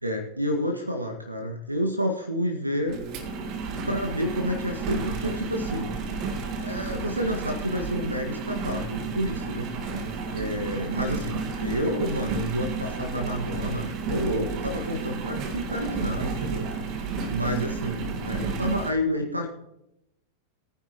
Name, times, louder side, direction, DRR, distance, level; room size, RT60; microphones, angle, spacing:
voice 1, 0.0-3.0 3.9-5.9 6.6-9.7 10.3-16.7 17.3-19.5, equal, 85° right, 4 dB, 1.6 m, -29 dB
Engine, 2.9-18.9, right 4 dB, 40° right, 1.8 m, -32 dB
20.0 x 10.0 x 3.0 m, 0.82 s
figure-of-eight pair, 90°, 0 cm